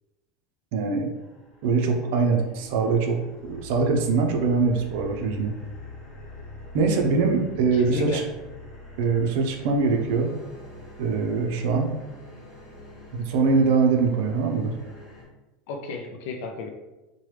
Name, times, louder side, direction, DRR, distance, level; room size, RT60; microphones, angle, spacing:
voice 1, 0.7-1.1 1.6-5.6 6.7-8.2 9.0-10.3 11.0-11.9 13.1-14.7, right 4 dB, 65° right, 3 dB, 0.5 m, -23 dB
sound 1, 1.1-15.3, left 2 dB, 30° left, 1.2 m, -45 dB
voice 2, 7.7-8.3 15.7-16.7, left 4 dB, 70° left, 4 dB, 0.4 m, -34 dB
3.0 x 2.2 x 3.2 m, 1.1 s
supercardioid pair, 150°, 0 cm